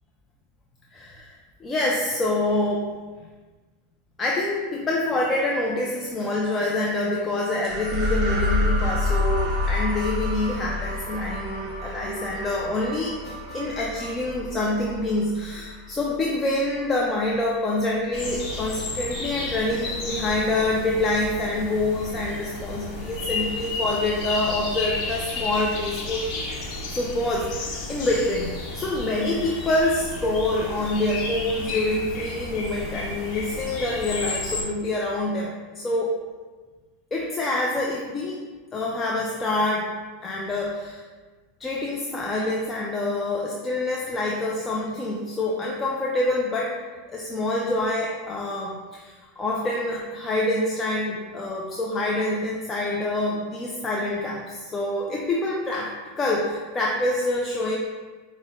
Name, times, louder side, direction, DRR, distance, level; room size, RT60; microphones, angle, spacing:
voice 1, 0.9-1.3 1.6-2.9 4.2-26.3 26.9-36.1 37.1-38.4 38.7-40.0 40.2-41.0 41.6-46.8 47.1-57.8, left 2 dB, 20° left, -3 dB, 0.5 m, -26 dB
sound 1, 7.6-16.3, left 2 dB, 40° right, 1.2 m, -28 dB
Wind instrument woodwind instrument, 7.7-14.4, right 5 dB, 70° right, 0.5 m, -39 dB
sound 2, 18.1-34.6, left 2 dB, 50° left, 0.9 m, -32 dB
5.2 x 2.1 x 3.6 m, 1.4 s
supercardioid pair, 120°, 0 cm